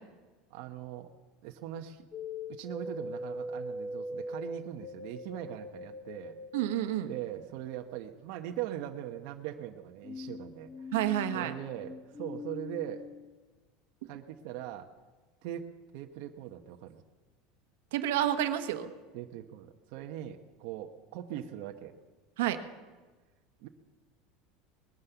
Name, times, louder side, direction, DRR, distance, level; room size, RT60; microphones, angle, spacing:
voice 1, 0.5-1.1 1.4-2.1 2.5-6.4 7.0-10.9 11.3-13.1 14.0-14.9 15.4-15.7 15.9-17.0 19.1-21.9 23.6-23.7, right 12 dB, 60° right, 3 dB, 1.0 m, -41 dB
sound 1, 2.1-6.7 10.0-13.3, left 1 dB, 20° left, 0.9 m, -41 dB
voice 2, 6.5-7.1 10.9-11.5 17.9-18.9 22.4-22.6, right 12 dB, 85° right, 8 dB, 1.2 m, -29 dB
20.5 x 9.7 x 7.0 m, 1.3 s
supercardioid pair, 150°, 0 cm